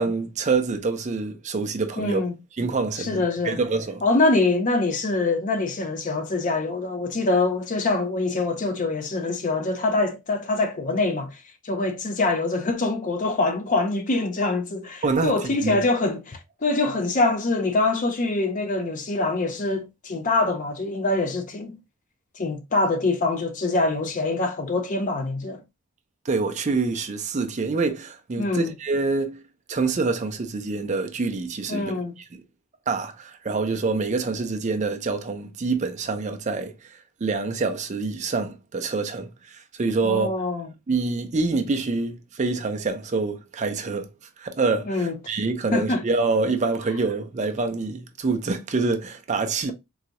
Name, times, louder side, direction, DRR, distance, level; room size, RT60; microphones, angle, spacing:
voice 1, 0.0-2.2 2.6-4.0 15.0-15.3 15.6-15.8 26.2-29.4 29.7-31.9 32.9-40.3 40.9-44.1 44.4-49.7, right 4 dB, 30° right, 0.4 m, -26 dB
voice 2, 2.0-2.3 3.0-3.6 4.0-21.8 22.4-25.6 28.4-28.7 31.7-32.1 40.0-40.7 44.9-45.1 45.7-46.0, left 2 dB, 35° left, 0.5 m, -24 dB
3.9 x 2.3 x 2.8 m
head